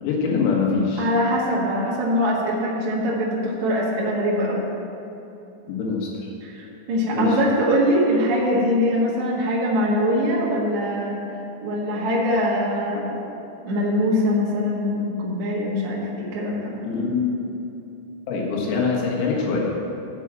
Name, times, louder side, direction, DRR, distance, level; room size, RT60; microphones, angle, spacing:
voice 1, 0.0-1.1 5.7-6.1 7.1-7.4 16.8-17.3 18.3-19.7, left 5 dB, 85° left, -2 dB, 4.3 m, -23 dB
voice 2, 1.0-4.7 6.4-11.2 11.6-13.3 13.6-16.7, equal, 60° right, -6 dB, 2.0 m, -23 dB
13.5 x 4.8 x 7.5 m, 2.8 s
omnidirectional pair, 5.9 m